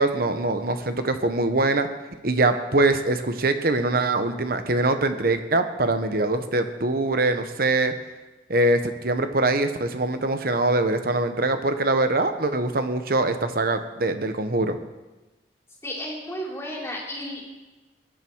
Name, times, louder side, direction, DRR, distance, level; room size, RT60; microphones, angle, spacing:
voice 1, 0.0-1.9 2.2-7.9 8.5-14.8, right 2 dB, 55° right, 8 dB, 1.2 m, -23 dB
voice 2, 15.8-17.5, equal, 15° left, -3 dB, 3.7 m, -33 dB
20.5 x 11.0 x 4.7 m, 1.1 s
head